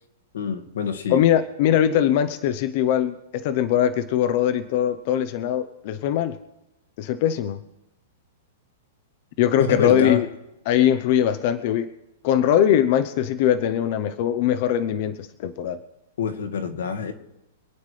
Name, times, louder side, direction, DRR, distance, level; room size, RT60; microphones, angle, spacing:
voice 1, 0.3-1.2 9.6-10.2 16.2-17.1, left 6 dB, 90° left, 5 dB, 1.8 m, -26 dB
voice 2, 1.1-6.4 7.0-7.6 9.4-10.3 10.7-11.9 12.2-15.8, left 10 dB, 45° left, 12 dB, 0.7 m, -21 dB
26.5 x 9.4 x 3.3 m, 0.94 s
supercardioid pair, 160°, 0 cm